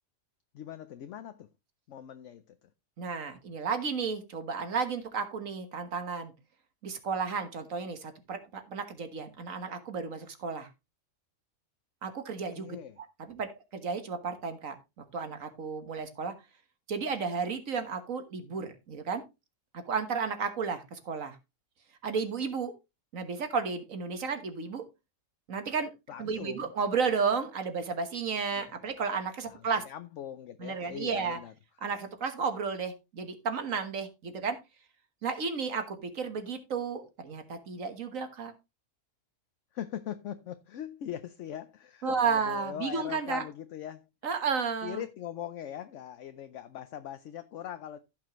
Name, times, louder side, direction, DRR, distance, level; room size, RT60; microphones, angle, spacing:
voice 1, 0.5-1.5 1.9-2.6 12.6-13.0 26.1-26.7 28.6-28.7 29.4-31.5 39.7-44.0 44.8-48.0, left 10 dB, 65° left, 0.9 m, -41 dB
voice 2, 3.0-6.3 6.8-10.7 12.0-12.8 13.3-14.8 15.1-16.3 16.9-19.2 19.7-21.4 22.0-22.7 23.1-24.8 25.5-25.9 26.2-29.8 30.6-31.4 31.8-34.6 35.2-38.5 42.0-43.4 44.2-45.0, right 5 dB, 65° right, 1.7 m, -33 dB
15.0 x 5.9 x 3.0 m
omnidirectional pair, 1.5 m